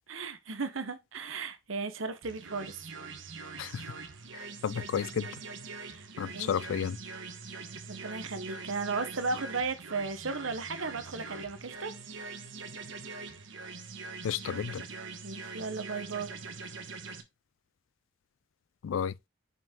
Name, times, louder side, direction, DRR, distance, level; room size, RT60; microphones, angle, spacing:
voice 1, 0.1-2.7 5.8-6.1 6.3-6.6 7.9-11.9 15.2-16.3, right 4 dB, 90° right, 1.0 m, -35 dB
sound 1, 2.2-17.2, right 4 dB, 70° right, 1.1 m, -43 dB
voice 2, 3.6-4.0 4.3-5.4 6.2-7.0 14.2-14.8 18.8-19.1, left 8 dB, 80° left, 0.3 m, -32 dB
5.7 x 5.2 x 3.6 m
head